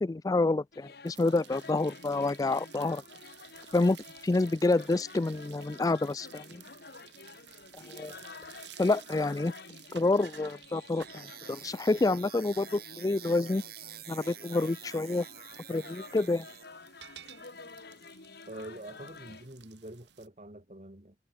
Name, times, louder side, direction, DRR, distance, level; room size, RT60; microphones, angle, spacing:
voice 1, 0.0-3.0 3.7-4.0 4.2-6.6 7.7-8.1 8.8-9.5 9.9-13.6 14.1-15.3 15.7-16.5, left 2 dB, 20° left, 0.3 m, -28 dB
sound 1, 0.7-19.5, left 4 dB, 65° left, 2.3 m, -50 dB
sound 2, 1.1-20.3, right 10 dB, 85° right, 2.5 m, -55 dB
sound 3, 10.6-16.6, right 11 dB, 60° right, 6.9 m, -48 dB
voice 2, 18.5-21.1, right 1 dB, 40° right, 2.9 m, -45 dB
head